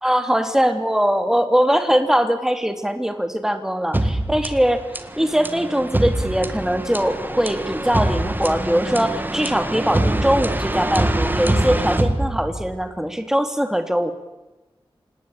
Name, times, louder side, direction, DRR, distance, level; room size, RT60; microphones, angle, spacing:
voice 1, 0.0-4.9 5.2-14.1, equal, 5° right, 7 dB, 2.9 m, -21 dB
sound 1, 3.9-12.9, right 1 dB, 20° right, 2.0 m, -24 dB
26.5 x 19.5 x 9.1 m, 1.1 s
wide cardioid pair, 80°, 9 cm